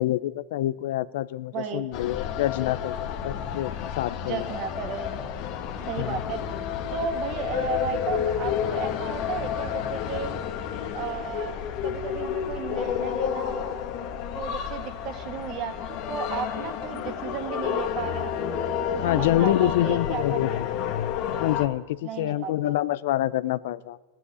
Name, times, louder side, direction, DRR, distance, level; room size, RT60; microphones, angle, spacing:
voice 1, 0.0-4.5 6.0-6.2 19.0-20.7 21.3-24.0, left 14 dB, 70° left, 17 dB, 0.5 m, -27 dB
voice 2, 1.5-1.9 4.2-5.1 5.9-6.6 6.9-10.3 11.0-11.5 11.8-13.8 14.3-18.4 18.9-20.6 22.0-22.7, right 8 dB, 50° right, 6 dB, 2.0 m, -34 dB
sound 1, 1.9-21.7, left 9 dB, 55° left, 1.5 m, -30 dB
16.5 x 7.9 x 9.5 m, 1.2 s
hypercardioid pair, 105°, 0 cm